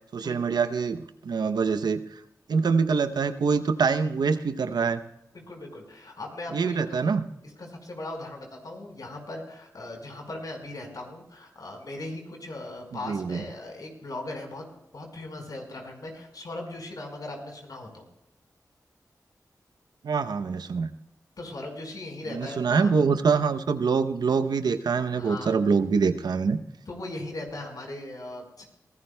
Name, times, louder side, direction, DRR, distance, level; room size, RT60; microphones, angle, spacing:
voice 1, 0.1-2.0 2.5-5.0 6.5-7.2 13.1-13.4 20.0-20.9 22.3-26.6, right 5 dB, 80° right, 10 dB, 0.7 m, -25 dB
voice 2, 5.3-7.0 7.4-14.7 14.9-18.0 21.4-23.0 25.1-25.6 26.9-28.6, left 2 dB, 65° left, 2 dB, 4.7 m, -38 dB
23.5 x 16.5 x 2.2 m, 0.84 s
cardioid pair, 40°, 7 cm